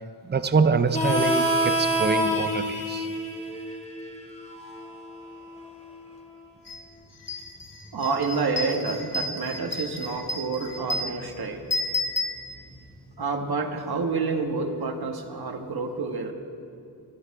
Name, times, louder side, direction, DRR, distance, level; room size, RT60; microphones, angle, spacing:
voice 1, 0.2-3.1, right 5 dB, 25° right, 0.6 m, -25 dB
Harmonica, 0.9-6.2, equal, 15° left, 2.1 m, -28 dB
sound 1, 6.7-6.8 7.1-13.0, left 1 dB, 40° left, 2.9 m, -32 dB
voice 2, 7.9-11.6 13.2-16.3, right 4 dB, 65° right, 1.5 m, -28 dB
23.5 x 10.0 x 4.8 m
wide cardioid pair, 90°, 41 cm